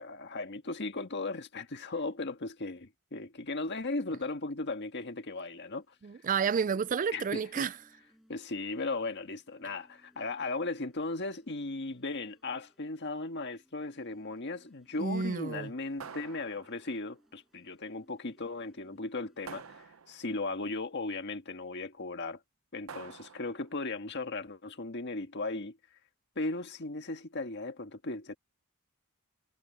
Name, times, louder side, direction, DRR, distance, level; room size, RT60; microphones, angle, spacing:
voice 1, 0.0-5.8 7.1-7.7 8.3-22.4 22.7-25.8 26.3-28.4, left 3 dB, 55° left, 1.6 m, -37 dB
sound 1, 4.8-19.9, equal, ahead, 7.6 m, -68 dB
voice 2, 6.0-7.7 15.0-15.7, right 6 dB, 40° right, 0.4 m, -30 dB
sound 2, 16.0-17.1 19.5-20.4 22.9-23.7, right 6 dB, 70° right, 0.7 m, -48 dB
head